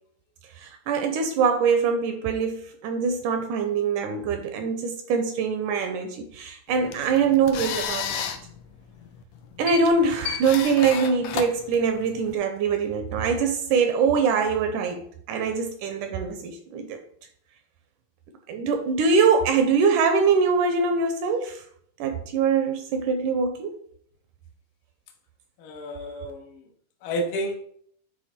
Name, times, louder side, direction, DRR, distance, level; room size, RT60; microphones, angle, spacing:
voice 1, 0.6-8.2 9.6-15.0 15.3-17.0 18.5-21.6 22.0-23.8 26.0-26.3, right 5 dB, 80° right, 2.0 m, -23 dB
sound 1, 6.7-12.3, left 7 dB, 90° left, 1.6 m, -33 dB
voice 2, 25.6-26.5 27.0-27.6, equal, 75° left, 1.2 m, -30 dB
9.3 x 3.4 x 4.2 m
omnidirectional pair, 4.1 m